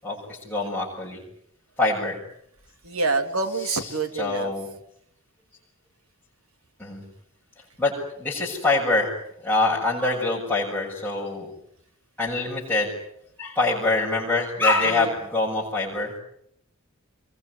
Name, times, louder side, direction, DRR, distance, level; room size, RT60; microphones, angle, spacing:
voice 1, 0.0-1.2 1.8-2.2 3.6-3.9 4.1-4.7 6.8-7.0 7.8-7.9 8.2-9.1 9.4-11.5 12.2-12.9 13.4-16.1, left 2 dB, 5° left, -8 dB, 7.3 m, -24 dB
voice 2, 2.8-4.5 14.8-15.1, right 3 dB, 80° right, 8 dB, 3.0 m, -27 dB
26.5 x 22.5 x 9.8 m, 0.73 s
head